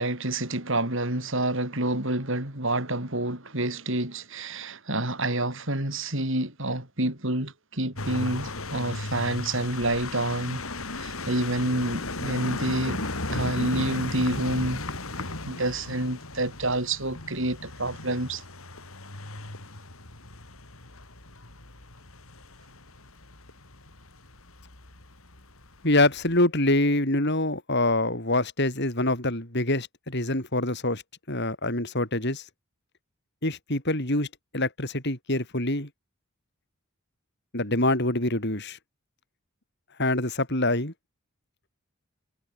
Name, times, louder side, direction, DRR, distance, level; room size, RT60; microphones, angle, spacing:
voice 1, 0.0-10.6 11.0-13.0 13.3-14.8 15.5-18.4, right 1 dB, 60° right, 6.6 m, -28 dB
sound 1, 8.0-26.4, left 2 dB, 70° left, 4.0 m, -36 dB
voice 2, 25.8-31.0 31.3-32.4 33.4-34.3 34.5-35.9 37.5-38.8 40.0-40.9, left 2 dB, 50° left, 6.0 m, -25 dB
head